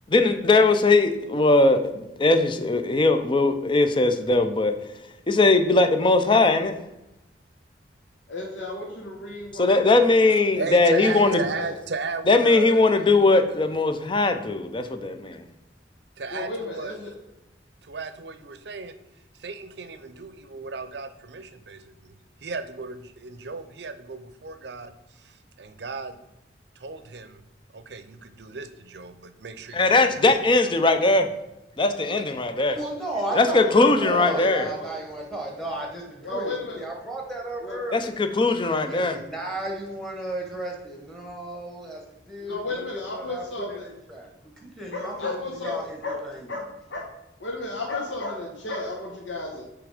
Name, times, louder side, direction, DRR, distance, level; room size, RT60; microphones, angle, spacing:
voice 1, 0.1-4.7 5.3-6.8 9.6-11.4 12.3-15.4 29.7-31.3 31.8-32.8 33.3-34.7 37.9-39.2, left 3 dB, 25° left, 8 dB, 0.5 m, -20 dB
voice 2, 8.3-9.6 11.2-11.7 16.3-17.1 33.3-35.0 36.2-36.8 37.6-37.8 42.5-43.8 44.9-45.8 46.0-46.2 46.5-46.6 46.9-47.0 47.4-49.6, left 2 dB, 90° left, -1 dB, 1.2 m, -33 dB
voice 3, 10.6-12.8 16.2-17.0 17.8-18.9 19.4-22.2 22.4-24.9 25.2-26.2 26.8-27.4 27.7-30.3, right 4 dB, 65° right, 11 dB, 0.6 m, -35 dB
voice 4, 32.7-38.1 38.9-43.8 44.1-46.0 46.2-46.5, right 1 dB, ahead, 0 dB, 1.5 m, -34 dB
8.7 x 3.5 x 5.0 m, 0.93 s
head